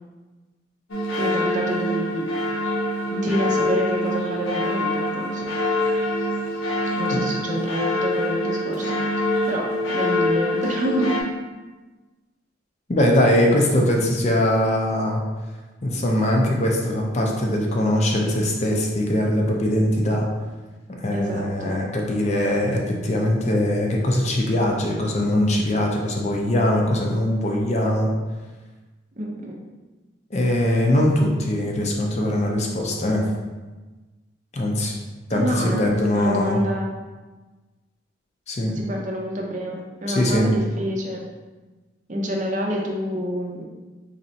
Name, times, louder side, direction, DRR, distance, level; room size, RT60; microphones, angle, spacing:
sound 1, 0.9-11.2, left 1 dB, 90° left, 0.8 m, -25 dB
voice 1, 1.2-2.3 3.1-5.5 6.9-9.0 9.5-11.2 21.1-21.8 29.2-29.6 35.3-35.8 36.1-36.9 38.7-41.3 42.1-43.6, equal, 40° right, -1 dB, 0.5 m, -27 dB
voice 2, 12.9-15.2 15.8-20.3 21.0-28.1 30.3-33.3 34.5-34.9 35.3-36.6 38.5-38.8 40.1-40.5, left 1 dB, 35° left, 0 dB, 0.5 m, -21 dB
3.9 x 3.2 x 2.7 m, 1.2 s
head